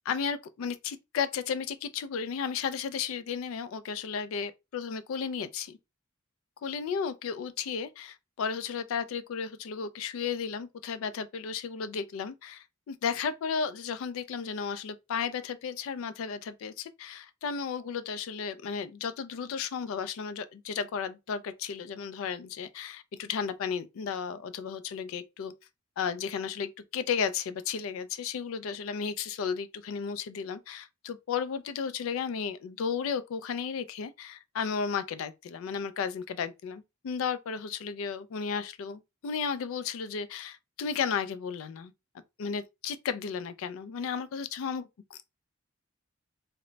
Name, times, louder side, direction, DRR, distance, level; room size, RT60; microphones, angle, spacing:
voice 1, 0.1-5.8 6.6-25.5 26.0-41.9 42.4-45.3, left 6 dB, 75° left, 0.3 m, -34 dB
2.1 x 2.0 x 3.8 m
head